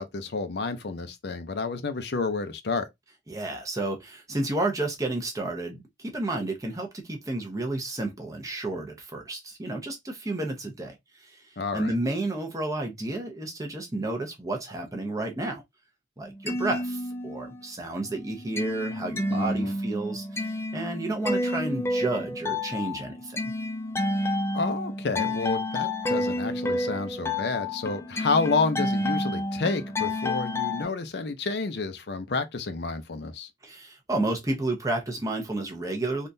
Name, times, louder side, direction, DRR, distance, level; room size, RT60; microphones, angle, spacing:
voice 1, 0.0-2.9 11.6-11.9 19.3-19.7 24.5-33.5, left 4 dB, 70° left, 0.6 m, -30 dB
voice 2, 3.3-15.6 16.2-23.4 33.6-36.3, right 2 dB, 20° right, 0.7 m, -31 dB
sound 1, 16.2-17.7 18.0-30.8, left 1 dB, 15° left, 0.3 m, -30 dB
3.6 x 2.4 x 2.6 m
head